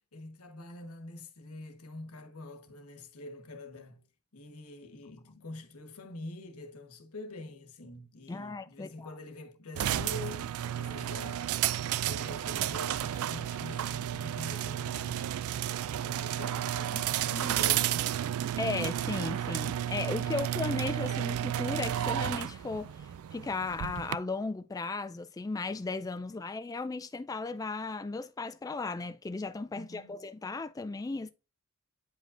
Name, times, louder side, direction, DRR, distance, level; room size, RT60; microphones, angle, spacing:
voice 1, 0.1-4.1 4.3-15.4 15.9-18.6 29.7-30.2, left 2 dB, 90° left, 1.2 m, -46 dB
voice 2, 8.3-9.1 18.6-22.9 23.3-31.3, left 3 dB, 15° left, 0.3 m, -36 dB
sound 1, 9.7-24.2, right 11 dB, 75° right, 0.3 m, -32 dB
9.1 x 5.2 x 2.5 m
head